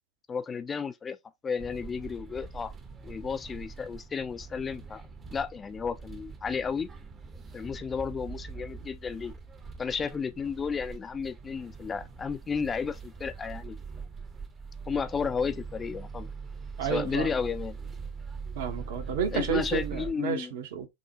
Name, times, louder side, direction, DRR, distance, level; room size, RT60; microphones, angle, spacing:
voice 1, 0.3-1.2 1.4-2.7 3.0-6.9 7.5-9.3 9.8-13.8 14.9-16.3 16.8-17.8 19.3-20.5, left 6 dB, 20° left, 0.3 m, -33 dB
sound 1, 1.6-20.1, right 5 dB, 20° right, 0.6 m, -42 dB
voice 2, 16.8-17.3 18.5-20.9, right 7 dB, 55° right, 0.8 m, -31 dB
6.1 x 2.1 x 2.7 m
figure-of-eight pair, 90°, 0 cm